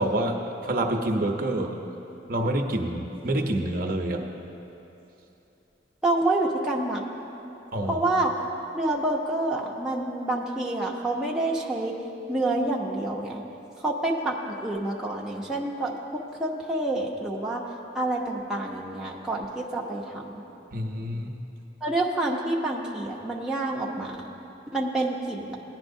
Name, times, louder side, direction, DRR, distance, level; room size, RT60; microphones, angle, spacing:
voice 1, 0.0-1.8 2.3-4.2 7.7-8.0 20.7-21.3, right 1 dB, 50° right, 2 dB, 0.7 m, -27 dB
voice 2, 6.0-7.0 7.9-8.3 8.7-12.0 12.3-13.4 13.8-17.7 17.9-20.4 21.8-24.3 24.7-25.6, right 2 dB, 5° right, -4 dB, 0.7 m, -28 dB
17.5 x 10.5 x 2.6 m, 2.9 s
head